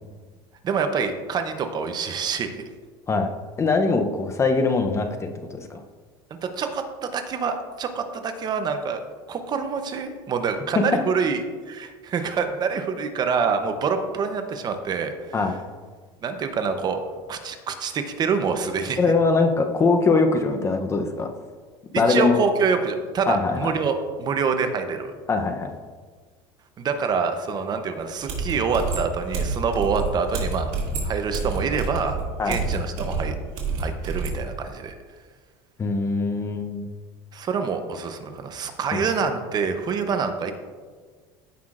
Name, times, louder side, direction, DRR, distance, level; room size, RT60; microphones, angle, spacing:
voice 1, 0.6-2.5 6.4-9.0 9.3-15.4 16.2-17.0 17.3-19.0 22.1-25.1 26.8-30.7 31.0-32.2 32.4-33.3 33.8-34.9 37.3-40.5, right 5 dB, 35° right, 7 dB, 0.8 m, -26 dB
voice 2, 3.6-5.8 15.3-15.5 19.0-21.3 21.9-22.4 23.3-23.7 25.3-25.7 32.4-32.6 35.8-36.9 38.9-39.0, left 3 dB, 25° left, 5 dB, 0.7 m, -22 dB
sound 1, 28.3-34.4, right 4 dB, 65° right, 2.5 m, -28 dB
15.0 x 5.7 x 2.5 m, 1.5 s
supercardioid pair, 125°, 12 cm